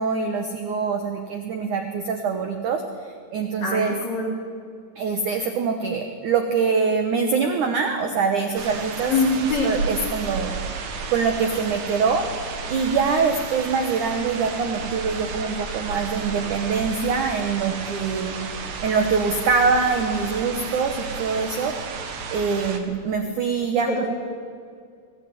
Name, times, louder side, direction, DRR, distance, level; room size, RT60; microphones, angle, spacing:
voice 1, 0.0-4.0 5.0-9.1 9.6-10.6 11.1-12.3 12.7-18.4 18.8-21.7 22.3-24.1, right 5 dB, 70° right, 6 dB, 1.9 m, -24 dB
voice 2, 3.6-4.3 9.1-9.7 23.9-24.0, left 3 dB, 40° left, -1 dB, 4.4 m, -23 dB
sound 1, 8.6-22.8, right 4 dB, 55° right, 2.6 m, -32 dB
23.5 x 15.5 x 9.5 m, 2.3 s
omnidirectional pair, 5.4 m